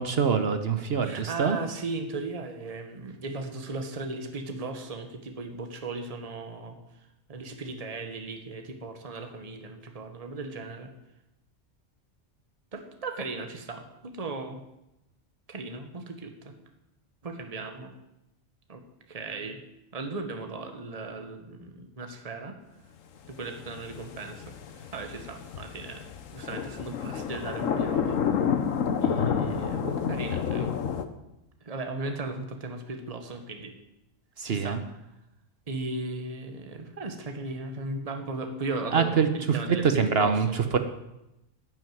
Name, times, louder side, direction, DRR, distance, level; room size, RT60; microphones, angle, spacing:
voice 1, 0.0-1.6 34.4-34.8 38.9-39.6 39.8-40.8, right 6 dB, 55° right, 8 dB, 1.1 m, -25 dB
voice 2, 1.0-6.8 7.3-10.9 12.7-14.6 15.5-16.5 17.2-17.9 18.7-18.8 19.1-19.6 19.9-22.5 23.3-26.1 26.3-28.2 29.0-30.7 31.6-33.7 34.4-34.8 35.7-40.7, right 3 dB, 30° right, 5 dB, 1.3 m, -37 dB
sound 1, 23.3-31.0, left 7 dB, 90° left, 1.3 m, -29 dB
12.0 x 6.4 x 9.2 m, 0.89 s
omnidirectional pair, 1.3 m